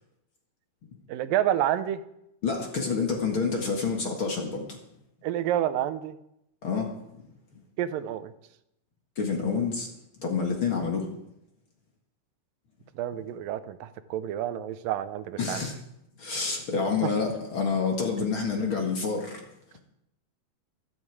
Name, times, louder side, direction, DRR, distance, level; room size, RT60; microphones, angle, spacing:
voice 1, 1.1-2.0 5.2-6.2 7.8-8.3 13.0-15.6 17.0-17.1 18.2-18.3, right 11 dB, 90° right, 12 dB, 2.5 m, -29 dB
voice 2, 2.4-4.8 6.6-6.9 7.1-7.2 9.2-9.9 10.2-11.1 15.4-15.7 16.2-19.4, left 5 dB, 45° left, 2 dB, 2.1 m, -28 dB
14.5 x 13.0 x 4.7 m, 0.81 s
omnidirectional pair, 3.9 m